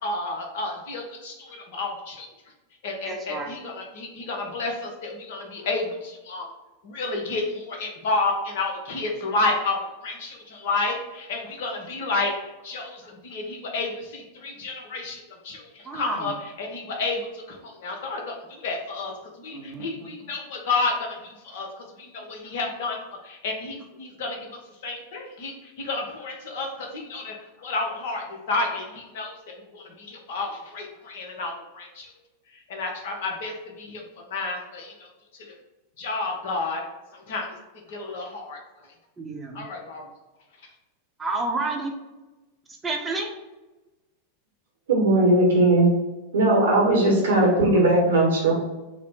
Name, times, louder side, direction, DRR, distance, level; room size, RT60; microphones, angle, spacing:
voice 1, 0.0-2.3 2.8-6.4 6.8-12.3 12.6-16.3 16.6-19.1 19.4-21.2 21.4-23.0 23.2-24.4 24.8-29.4 29.7-32.1 32.7-34.0 34.3-34.9 36.0-36.8 37.3-37.5 37.9-38.6 39.5-40.0, left 3 dB, 55° left, 1 dB, 0.9 m, -30 dB
voice 2, 3.1-3.6 15.8-16.3 19.5-20.3 39.2-39.6 41.2-41.9 42.8-43.3, right 3 dB, 15° right, 0 dB, 0.7 m, -30 dB
voice 3, 44.9-45.9 46.3-48.5, right 2 dB, 65° right, -2 dB, 0.8 m, -18 dB
4.1 x 2.1 x 4.2 m, 1.1 s
figure-of-eight pair, 90°, 0 cm